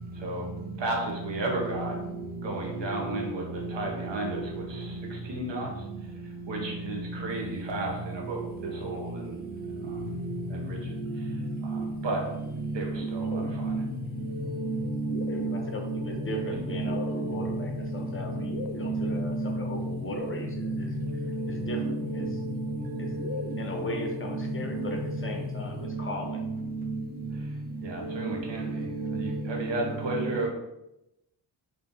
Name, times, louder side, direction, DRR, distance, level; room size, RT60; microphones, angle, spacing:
voice 1, 0.1-2.0 2.4-9.4 9.8-10.0 10.5-11.3 11.6-12.2 12.7-13.8 16.5-16.6 27.8-30.5, right 2 dB, 90° right, 0 dB, 1.0 m, -34 dB
voice 2, 8.7-9.0 15.3-20.9 21.5-22.3 23.0-23.1 23.6-26.5, left 1 dB, 30° left, 2 dB, 0.6 m, -37 dB
sound 1, 9.9-12.0 12.9-25.9, left 7 dB, 75° left, 0.5 m, -38 dB
voice 3, 13.0-13.9 14.5-16.0 16.3-17.6 18.8-19.6 20.6-20.8 21.3-22.3 23.2-23.4 24.0-24.9 26.8-27.0 28.1-28.4 28.7-29.4 30.0-30.3, right 4 dB, 20° right, 2 dB, 0.5 m, -32 dB
3.0 x 2.6 x 3.6 m, 0.91 s
wide cardioid pair, 105°, 43 cm